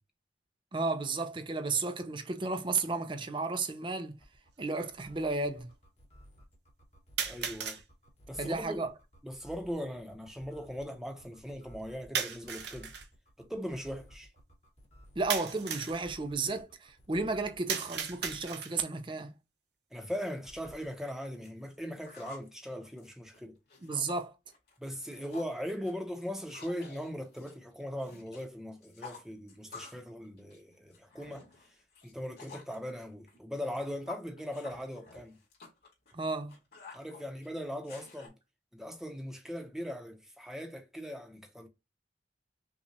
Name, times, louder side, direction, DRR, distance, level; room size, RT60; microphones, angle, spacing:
voice 1, 0.7-4.1 4.6-5.7 8.4-8.9 15.2-19.3 23.8-24.3 36.1-36.5, right 3 dB, 25° right, 0.5 m, -33 dB
sound 1, 2.8-2.9 3.9-4.0 7.2-7.8 12.1-13.1 15.3-16.0 17.7-18.9, right 7 dB, 65° right, 0.9 m, -35 dB
sound 2, 4.2-18.6 20.4-21.0, equal, 40° left, 1.2 m, -56 dB
voice 2, 7.2-7.8 8.3-8.9 9.2-12.9 13.4-14.3 19.9-23.5 24.8-31.5 32.0-35.4 36.9-38.3 38.7-41.7, equal, 5° right, 0.8 m, -39 dB
sound 3, 20.4-20.5 20.8-22.5 22.8-24.2 24.5-24.8 25.0-25.6 25.9-28.4 28.7-30.1 30.4-32.8 33.3-38.3, left 4 dB, 60° left, 2.3 m, -51 dB
5.8 x 2.4 x 2.7 m
head